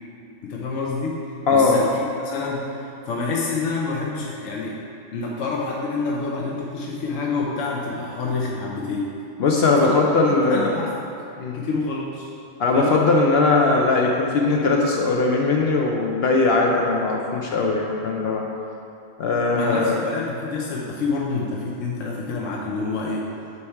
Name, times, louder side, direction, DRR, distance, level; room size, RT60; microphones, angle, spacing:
voice 1, 0.4-1.2 1.5-4.8 5.1-9.1 9.8-10.0 10.5-11.1 11.5-12.3 12.7-13.0 19.5-23.3, left 4 dB, 80° left, -3 dB, 1.0 m, -27 dB
voice 2, 1.5-1.8 9.4-10.8 11.4-11.6 12.6-18.5 19.2-20.0, left 3 dB, 65° left, 0 dB, 0.7 m, -19 dB
8.3 x 3.3 x 4.5 m, 2.6 s
omnidirectional pair, 1.3 m